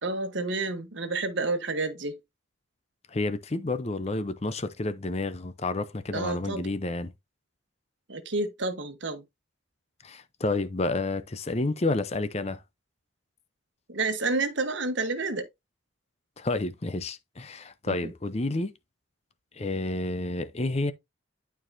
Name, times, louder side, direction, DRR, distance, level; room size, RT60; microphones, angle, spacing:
voice 1, 0.0-2.2 6.1-6.7 8.1-9.2 13.9-15.5 17.9-18.1, right 3 dB, 65° right, 1.2 m, -30 dB
voice 2, 3.1-7.1 10.0-12.6 16.4-18.7 19.5-20.9, left 2 dB, 30° left, 0.6 m, -30 dB
11.5 x 4.7 x 2.7 m
head